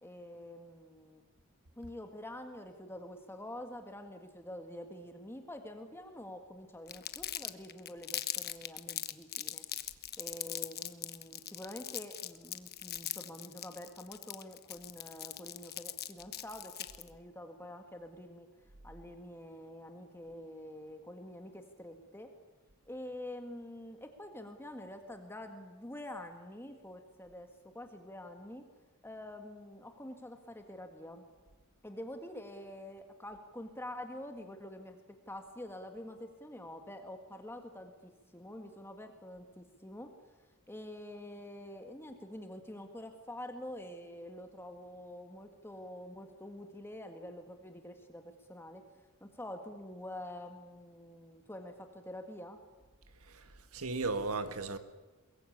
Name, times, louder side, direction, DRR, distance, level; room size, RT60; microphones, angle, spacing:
voice 1, 0.0-1.2 1.8-9.6 10.2-18.5 18.8-22.3 22.9-27.5 27.7-28.6 29.0-31.2 31.8-40.1 40.7-48.8 49.2-52.6, left 1 dB, 10° left, 1.8 m, -47 dB
Crumpling crinkling, 6.9-17.1, left 13 dB, 50° left, 1.1 m, -40 dB
voice 2, 53.2-54.8, right 3 dB, 80° right, 1.7 m, -36 dB
22.0 x 22.0 x 8.7 m
head